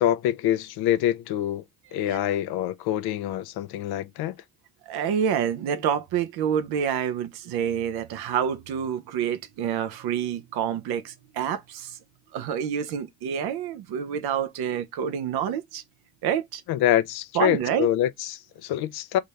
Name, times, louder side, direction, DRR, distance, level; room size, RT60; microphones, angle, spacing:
voice 1, 0.0-1.6 1.9-4.3 16.7-19.2, left 12 dB, 70° left, 0.6 m, -25 dB
voice 2, 4.9-12.0 12.3-15.8 16.2-16.6 17.3-17.9, right 8 dB, 70° right, 0.8 m, -27 dB
3.8 x 2.7 x 3.3 m
hypercardioid pair, 50°, 39 cm